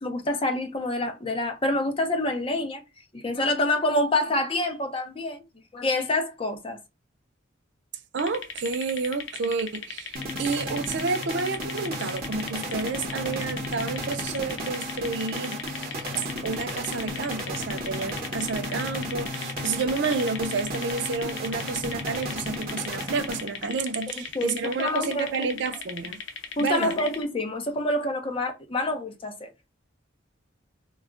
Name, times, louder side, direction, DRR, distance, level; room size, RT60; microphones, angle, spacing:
voice 1, 0.0-5.4 5.7-6.8 24.1-25.5 26.6-29.5, left 1 dB, 30° left, 0.5 m, -27 dB
voice 2, 8.1-26.2 26.6-27.0, right 4 dB, 65° right, 0.4 m, -30 dB
sound 1, 8.2-27.2, left 6 dB, 75° left, 0.6 m, -38 dB
sound 2, 10.2-23.8, equal, 50° right, 0.8 m, -34 dB
2.3 x 2.1 x 3.6 m
head